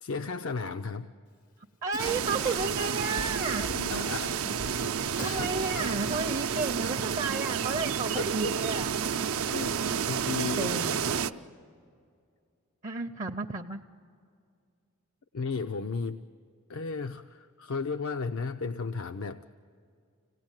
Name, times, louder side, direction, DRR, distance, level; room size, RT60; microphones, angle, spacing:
voice 1, 0.0-1.1 3.7-4.8 5.2-5.8 8.2-8.5 9.5-10.9 15.3-16.3 16.7-19.4, left 4 dB, 65° left, 8 dB, 0.5 m, -35 dB
voice 2, 1.8-3.7 5.2-8.9 10.4-11.2 12.8-13.8, right 3 dB, 30° right, 5 dB, 0.5 m, -32 dB
Cough, 1.9-2.7 3.2-3.8 5.2-6.2, left 3 dB, 80° left, 1.1 m, -44 dB
sound 1, 2.0-11.3, right 7 dB, 75° right, 0.6 m, -30 dB
26.5 x 18.0 x 9.0 m, 2.4 s
head